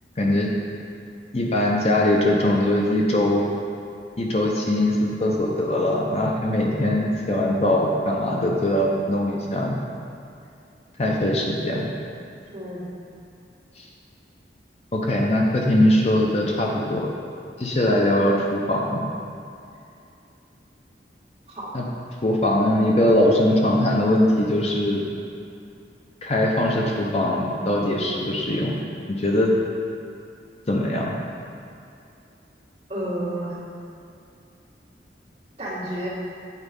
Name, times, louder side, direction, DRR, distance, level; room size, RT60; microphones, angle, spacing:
voice 1, 0.2-0.5 1.3-3.5 4.2-9.8 11.0-11.9 13.8-13.9 14.9-17.1 17.6-19.0 21.7-21.8 22.2-25.1 26.2-28.8 29.1-29.5 30.7-31.2, left 1 dB, 35° left, -2 dB, 0.7 m, -21 dB
voice 2, 12.5-12.9 21.5-21.7 32.9-33.6 35.6-36.1, right 1 dB, 35° right, -8 dB, 2.0 m, -31 dB
8.3 x 4.4 x 5.3 m, 2.5 s
head